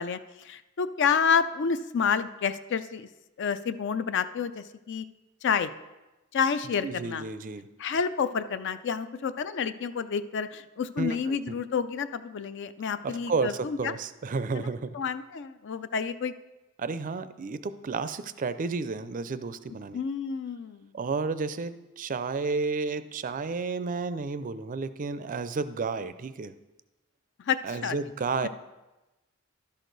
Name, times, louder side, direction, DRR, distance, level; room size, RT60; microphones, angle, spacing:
voice 1, 0.0-3.1 3.4-5.0 5.4-5.7 6.3-7.2 7.8-13.9 14.5-14.7 14.9-16.3 19.9-20.9 27.4-28.0, left 6 dB, 55° left, 12 dB, 0.4 m, -29 dB
voice 2, 6.8-7.7 11.0-11.6 13.0-14.9 16.8-20.0 20.9-26.5 27.6-28.5, right 4 dB, 40° right, 13 dB, 0.4 m, -32 dB
11.5 x 6.4 x 3.9 m, 1.1 s
head